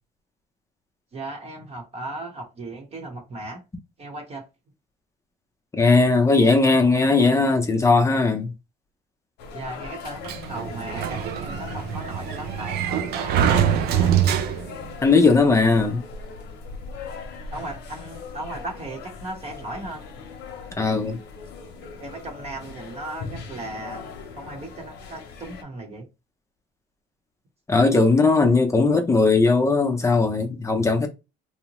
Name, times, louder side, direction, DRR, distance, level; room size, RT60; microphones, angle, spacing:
voice 1, 1.1-3.6 4.0-4.5 9.5-14.1 17.5-20.0 22.0-24.0 24.3-26.1, right 2 dB, 40° right, 0.9 m, -36 dB
voice 2, 5.7-8.5 15.0-16.0 20.8-21.2 27.7-31.1, left 3 dB, 15° left, 0.6 m, -18 dB
sound 1, 9.4-25.6, left 5 dB, 85° left, 0.7 m, -40 dB
Sliding door, 10.2-14.9, right 9 dB, 70° right, 0.4 m, -24 dB
2.8 x 2.0 x 2.9 m
cardioid pair, 110°, 17 cm